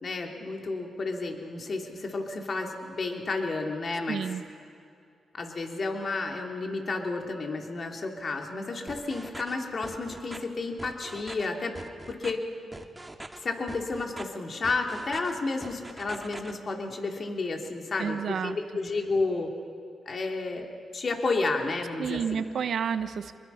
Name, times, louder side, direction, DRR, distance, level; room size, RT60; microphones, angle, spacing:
voice 1, 0.0-4.2 5.3-11.7 12.1-12.4 13.4-19.5 20.1-22.4, left 3 dB, 55° left, 2 dB, 3.0 m, -31 dB
voice 2, 4.1-4.4 18.0-18.6 22.0-23.4, right 7 dB, 70° right, 11 dB, 1.0 m, -30 dB
sound 1, 8.9-9.5 9.8-10.4 10.8-11.5 11.7-12.3 12.7-13.4 13.7-14.2 14.6-15.3 15.6-16.5, right 2 dB, 15° right, 2.0 m, -42 dB
25.5 x 21.5 x 5.8 m, 2.4 s
supercardioid pair, 50°, 0 cm